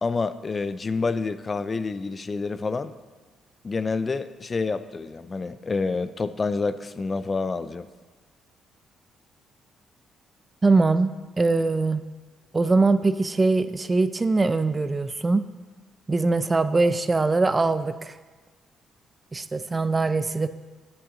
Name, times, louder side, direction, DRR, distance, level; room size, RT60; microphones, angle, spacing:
voice 1, 0.0-2.9 3.6-7.9, left 4 dB, 30° left, 13 dB, 0.5 m, -28 dB
voice 2, 10.6-12.0 12.5-15.4 16.1-18.1 19.3-20.5, right 3 dB, 25° right, 12 dB, 0.5 m, -22 dB
8.8 x 8.7 x 6.5 m, 1.3 s
cardioid pair, 90°, 0 cm